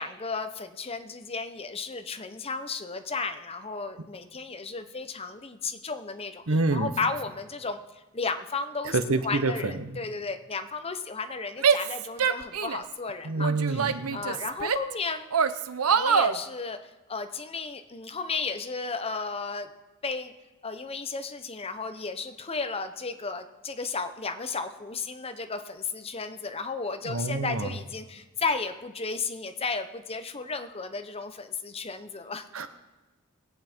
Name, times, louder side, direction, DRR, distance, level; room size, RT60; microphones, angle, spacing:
voice 1, 0.0-6.4 6.7-7.8 8.1-9.0 9.2-15.3 16.0-19.7 20.0-20.3 20.6-32.5, left 4 dB, 25° left, 8 dB, 0.8 m, -34 dB
voice 2, 6.5-6.9 8.9-10.0 13.2-14.2 27.0-27.7 32.5-32.7, right 3 dB, 65° right, 10 dB, 1.0 m, -27 dB
Female speech woman speaking / Yell, 11.6-12.9 13.4-14.9 15.3-16.4, right 6 dB, 85° right, 0.7 m, -25 dB
21.0 x 8.6 x 4.5 m, 1.1 s
head